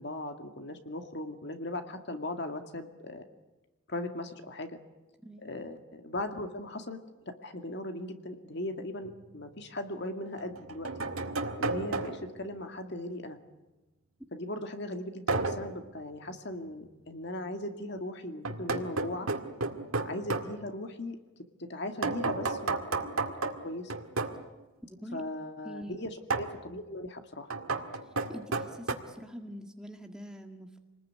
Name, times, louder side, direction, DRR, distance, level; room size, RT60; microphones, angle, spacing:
voice 1, 0.0-3.2 3.9-4.8 5.4-7.0 7.4-10.9 11.6-13.4 14.3-19.3 20.1-21.2 21.7-23.9 25.1-27.5, left 1 dB, 55° left, 6 dB, 2.2 m, -38 dB
sound 1, 9.0-9.1 10.4-12.4 15.3-15.8 18.4-20.5 22.0-24.4 26.3-26.6 27.5-28.9, right 3 dB, 85° right, 2.0 m, -32 dB
voice 2, 24.8-25.2 25.6-26.0 28.3-30.8, equal, 5° right, 4 dB, 1.8 m, -44 dB
27.0 x 20.5 x 9.5 m, 1.1 s
head